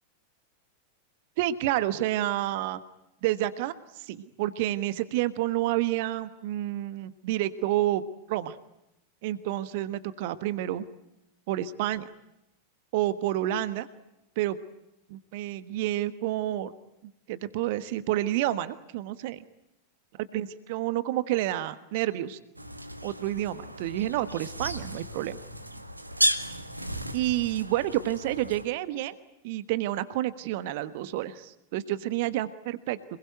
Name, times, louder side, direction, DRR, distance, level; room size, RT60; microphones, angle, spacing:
voice 1, 1.4-2.8 3.2-8.0 8.3-8.6 9.2-10.8 11.5-12.1 12.9-13.9 14.4-14.6 15.1-16.7 17.3-19.4 20.3-22.4 23.0-25.4 27.1-29.1 29.4-33.0, right 14 dB, 50° right, 13 dB, 1.4 m, -29 dB
sound 1, 22.6-28.6, right 1 dB, 85° right, 1.8 m, -33 dB
27.5 x 21.0 x 9.1 m, 0.89 s
figure-of-eight pair, 90°, 0 cm